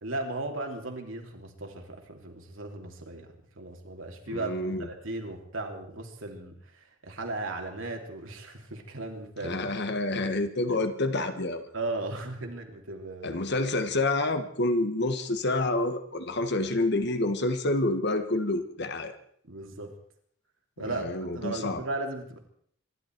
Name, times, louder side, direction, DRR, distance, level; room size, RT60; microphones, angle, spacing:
voice 1, 0.0-9.6 10.7-10.8 11.7-13.4 19.5-19.9 20.8-21.1 21.3-22.4, right 2 dB, 70° right, 3 dB, 2.9 m, -36 dB
voice 2, 4.3-4.9 9.4-11.7 13.2-19.1 20.8-21.8, left 2 dB, 55° left, 9 dB, 1.5 m, -28 dB
26.0 x 12.0 x 4.6 m, 0.63 s
head